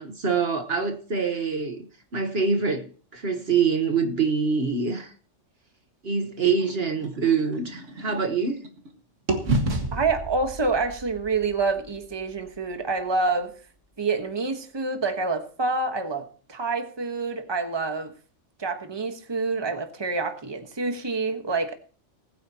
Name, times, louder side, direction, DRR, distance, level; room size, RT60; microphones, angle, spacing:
voice 1, 0.0-1.9 2.1-5.1 6.0-8.6, right 5 dB, 55° right, 1.4 m, -25 dB
sound 1, 6.6-8.9 9.3-13.3, right 2 dB, 75° right, 2.2 m, -32 dB
voice 2, 9.9-13.5 14.0-18.1 18.6-21.8, right 3 dB, 20° right, 1.3 m, -27 dB
20.0 x 9.2 x 2.9 m
omnidirectional pair, 1.3 m